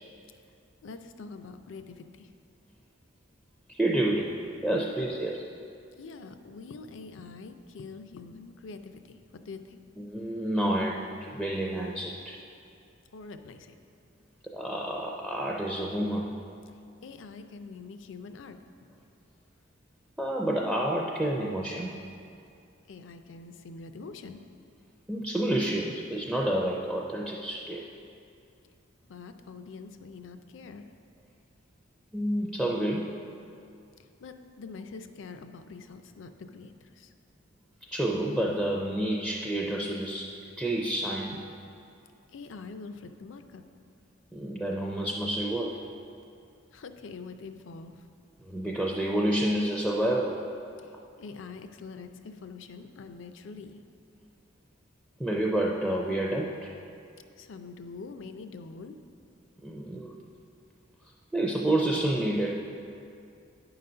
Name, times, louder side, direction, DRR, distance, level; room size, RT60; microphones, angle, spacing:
voice 1, 0.8-2.3 6.0-9.2 9.4-9.8 13.1-13.8 17.0-18.6 22.9-24.4 29.1-30.9 34.0-37.1 42.3-43.6 46.7-48.1 50.8-53.8 57.4-59.0, left 4 dB, 65° left, 8 dB, 0.4 m, -44 dB
voice 2, 3.7-5.4 10.0-12.4 14.5-16.3 20.2-22.0 25.1-27.8 32.1-33.2 37.9-40.3 40.6-41.3 44.3-45.8 48.4-50.5 55.2-56.7 59.6-60.1 61.3-62.6, right 1 dB, 5° right, -2 dB, 0.4 m, -29 dB
9.5 x 4.0 x 5.5 m, 2.5 s
head